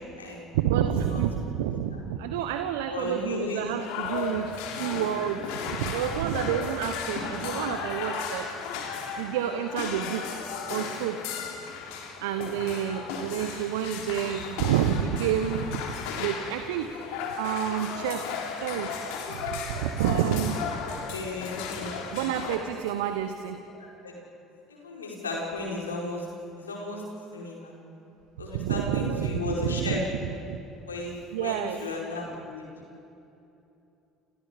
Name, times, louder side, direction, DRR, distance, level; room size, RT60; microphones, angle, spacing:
voice 1, 0.0-0.4 1.0-1.2 1.9-2.0 2.9-3.7 21.1-22.3 23.8-24.1 24.7-26.3 26.6-27.0 27.3-27.7 28.4-30.0 30.9-32.6, left 2 dB, 90° left, -2 dB, 4.9 m, -35 dB
voice 2, 0.5-8.5 9.2-10.3 10.7-11.2 12.2-15.8 16.2-17.1 17.4-18.3 18.6-18.9 19.3-20.6 22.1-23.6 28.5-30.0 30.5-30.6 31.3-31.8, right 9 dB, 75° right, 8 dB, 1.2 m, -29 dB
sound 1, 3.8-22.6, left 6 dB, 70° left, 3.4 m, -35 dB
28.5 x 28.5 x 5.2 m, 2.8 s
hypercardioid pair, 60°, 0 cm